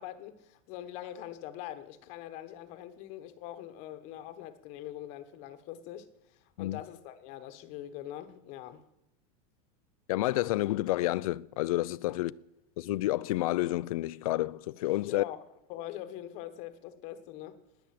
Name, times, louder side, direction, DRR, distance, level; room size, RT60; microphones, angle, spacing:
voice 1, 0.0-8.8 15.0-15.4 15.7-17.6, left 12 dB, 35° left, 1.2 m, -43 dB
voice 2, 10.1-12.3 12.8-15.2, left 17 dB, 70° left, 0.5 m, -29 dB
20.0 x 8.2 x 7.6 m
supercardioid pair, 170°, 19 cm